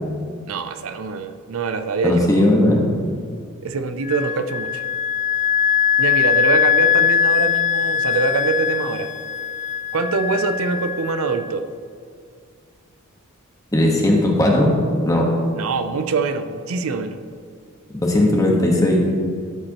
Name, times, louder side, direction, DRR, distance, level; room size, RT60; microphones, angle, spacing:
voice 1, 0.5-2.4 3.6-4.8 6.0-9.1 9.9-11.7 15.6-17.2, right 4 dB, 75° right, 9 dB, 0.5 m, -24 dB
voice 2, 2.0-2.9 13.7-14.7 15.0-15.2 18.0-19.0, left 1 dB, 15° left, -1 dB, 1.3 m, -17 dB
Wind instrument woodwind instrument, 4.0-11.5, left 8 dB, 35° left, 0.4 m, -21 dB
12.5 x 7.7 x 3.0 m, 2.2 s
head